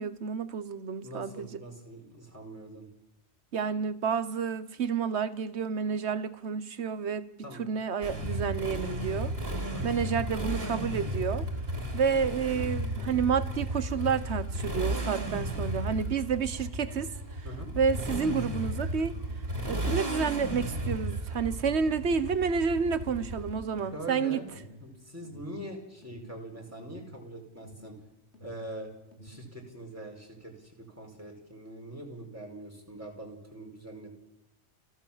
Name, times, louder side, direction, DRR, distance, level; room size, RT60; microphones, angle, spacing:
voice 1, 0.0-1.5 3.5-7.3 7.6-9.3 9.8-11.5 11.9-17.1 17.8-19.1 19.7-24.4, right 6 dB, 75° right, 14 dB, 1.4 m, -30 dB
voice 2, 1.0-2.9 7.4-7.7 9.7-10.0 16.3-16.5 17.4-17.7 23.9-24.5 24.8-28.0 28.4-28.9 29.2-34.1, right 1 dB, 15° right, 1 dB, 4.7 m, -43 dB
Motorcycle, 8.0-23.8, right 1 dB, 55° right, 3.4 m, -34 dB
Alarm, 10.6-28.0 28.3-29.6, equal, 75° left, 4.0 m, -50 dB
30.0 x 12.5 x 7.4 m, 0.89 s
omnidirectional pair, 1.1 m